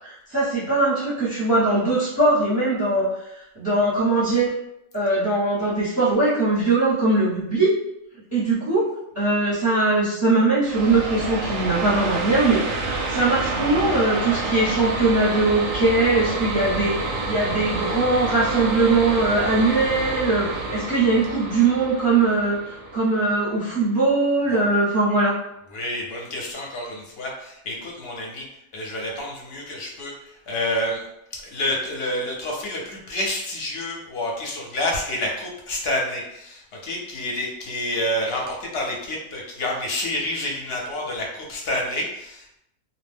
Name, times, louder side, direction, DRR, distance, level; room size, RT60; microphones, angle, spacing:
voice 1, 0.0-4.5 4.9-7.7 8.3-8.9 9.1-12.6 13.1-25.3, right 2 dB, 15° right, -11 dB, 0.7 m, -21 dB
sound 1, 10.6-24.0, right 3 dB, 65° right, 0.8 m, -28 dB
voice 2, 25.7-28.4 28.7-30.1 30.5-31.0 31.5-42.6, left 1 dB, 55° left, -1 dB, 0.8 m, -28 dB
2.4 x 2.1 x 3.3 m, 0.80 s
omnidirectional pair, 1.4 m